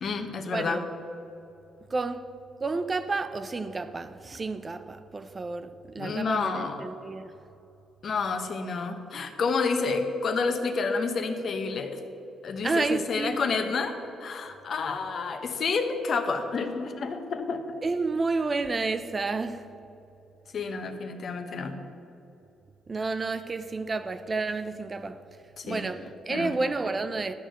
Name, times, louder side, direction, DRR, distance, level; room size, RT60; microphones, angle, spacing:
voice 1, 0.0-0.8 6.0-6.9 8.0-12.0 12.4-17.8 20.5-21.8 25.6-25.9 26.3-26.5, left 4 dB, 55° left, 1.0 m, -29 dB
voice 2, 0.5-0.8 1.9-2.3 2.6-7.3 12.6-13.4 17.8-19.7 22.9-25.2 25.6-27.3, right 3 dB, 30° right, 0.5 m, -30 dB
12.0 x 4.6 x 7.8 m
cardioid pair, 90°, 0 cm